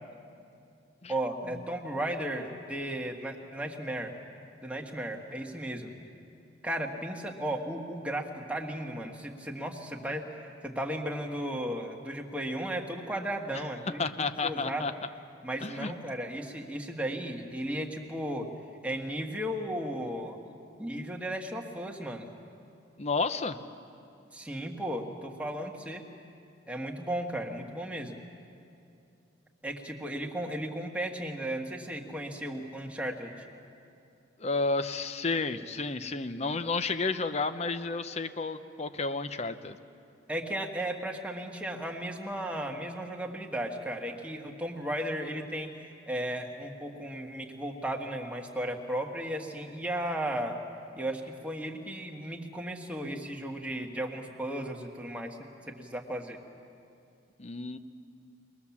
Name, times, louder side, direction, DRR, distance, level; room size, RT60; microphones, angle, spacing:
voice 1, 1.1-4.2 4.6-5.9 6.6-14.0 14.4-14.9 15.4-18.5 18.8-20.4 20.8-22.3 24.3-26.0 26.7-28.2 29.6-33.3 40.3-45.7 46.1-50.6 51.0-55.4 55.7-56.4, right 1 dB, 5° right, 1 dB, 1.7 m, -35 dB
voice 2, 14.0-14.9 15.6-15.9 23.0-23.6 34.4-39.8 57.4-57.8, left 3 dB, 35° left, 11 dB, 0.8 m, -31 dB
23.5 x 20.0 x 7.3 m, 2.7 s
head